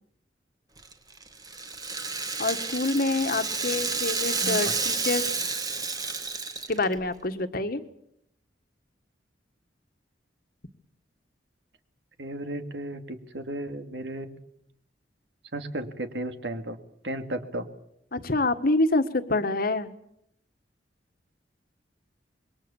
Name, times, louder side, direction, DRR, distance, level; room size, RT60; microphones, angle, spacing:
Rattle (instrument), 0.8-7.0, right 4 dB, 20° right, 1.8 m, -30 dB
voice 1, 2.4-5.3 6.7-7.8 18.1-19.9, left 2 dB, 55° left, 9 dB, 1.6 m, -26 dB
voice 2, 12.2-14.4 15.5-16.8 17.0-17.7, right 1 dB, 75° right, 8 dB, 2.4 m, -34 dB
26.5 x 22.5 x 7.2 m, 0.74 s
head